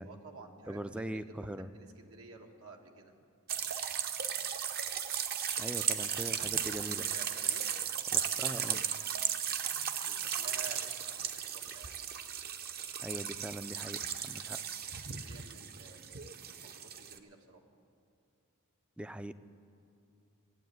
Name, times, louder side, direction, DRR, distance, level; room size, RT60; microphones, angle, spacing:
voice 1, 0.0-1.5 1.7-3.2 6.0-7.7 8.2-8.9 10.0-12.0 14.9-17.6, right 4 dB, 85° right, 3 dB, 1.4 m, -53 dB
voice 2, 0.7-1.7 5.6-7.0 8.1-8.8 13.0-14.6 19.0-19.3, right 1 dB, 5° right, 13 dB, 0.3 m, -41 dB
sound 1, 3.5-17.2, right 8 dB, 45° right, 0.7 m, -36 dB
14.5 x 7.8 x 9.2 m, 2.6 s
head